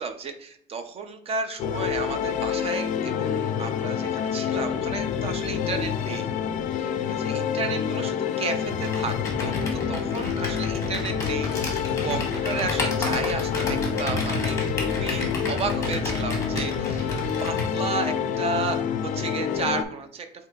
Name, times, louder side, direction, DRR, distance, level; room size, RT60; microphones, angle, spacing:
voice 1, 0.0-6.3 6.7-9.6 9.9-17.1 17.4-20.3, right 4 dB, 35° right, 7 dB, 0.6 m, -33 dB
sound 1, 1.6-19.8, left 8 dB, 45° left, 0.4 m, -28 dB
Computer keyboard, 8.7-17.7, left 2 dB, 15° left, 1.1 m, -31 dB
7.8 x 2.9 x 2.3 m, 0.64 s
cardioid pair, 160°, 18 cm